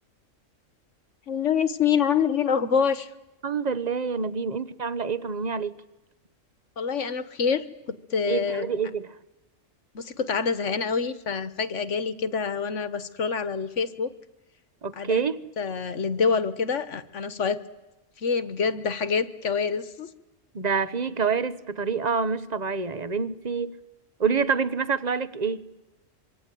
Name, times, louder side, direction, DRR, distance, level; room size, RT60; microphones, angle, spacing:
voice 1, 1.3-3.1 6.8-7.6 8.1-8.7 9.9-14.1 15.0-15.2 15.6-17.6 18.2-20.1, left 6 dB, 65° left, 1.6 m, -26 dB
voice 2, 3.4-5.8 8.3-9.2 14.8-15.4 20.5-23.8 24.2-25.6, right 5 dB, 35° right, 1.1 m, -27 dB
26.0 x 24.0 x 9.2 m
omnidirectional pair, 1.3 m